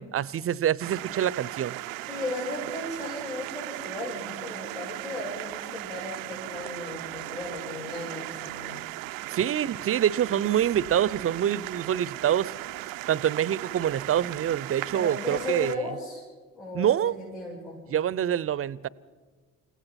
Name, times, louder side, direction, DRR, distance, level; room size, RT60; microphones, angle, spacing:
voice 1, 0.0-1.8 9.3-12.5 13.1-15.9 16.7-17.2 17.9-18.9, right 10 dB, 35° right, 0.6 m, -26 dB
sound 1, 0.8-15.8, right 19 dB, 80° right, 0.5 m, -37 dB
voice 2, 2.1-8.8 14.9-16.2 16.5-17.8, left 2 dB, 80° left, 5.9 m, -36 dB
29.0 x 16.0 x 5.8 m
hypercardioid pair, 50°, 40 cm